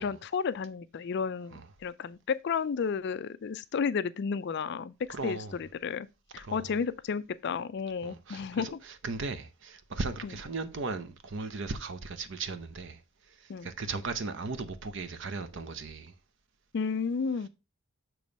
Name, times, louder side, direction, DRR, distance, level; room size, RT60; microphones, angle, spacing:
voice 1, 0.0-4.9 5.2-6.1 6.3-8.7 13.5-13.7 16.7-17.5, left 6 dB, 50° left, 0.4 m, -32 dB
voice 2, 5.1-5.5 6.4-6.7 8.0-13.0 13.3-16.1, right 3 dB, 55° right, 0.7 m, -37 dB
6.9 x 3.1 x 5.1 m
head